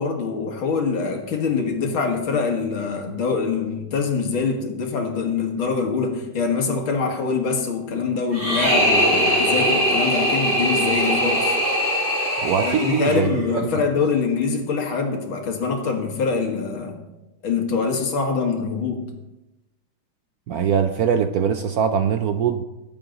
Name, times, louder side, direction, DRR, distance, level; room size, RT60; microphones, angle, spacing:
voice 1, 0.0-11.6 12.6-17.0 17.4-19.0, left 5 dB, 80° left, 3 dB, 2.5 m, -24 dB
sound 1, 8.3-13.4, equal, 25° right, 6.3 m, -21 dB
voice 2, 12.4-13.3 13.5-13.7 20.5-22.6, right 7 dB, 75° right, 9 dB, 0.8 m, -22 dB
22.5 x 7.8 x 4.0 m, 0.96 s
omnidirectional pair, 2.2 m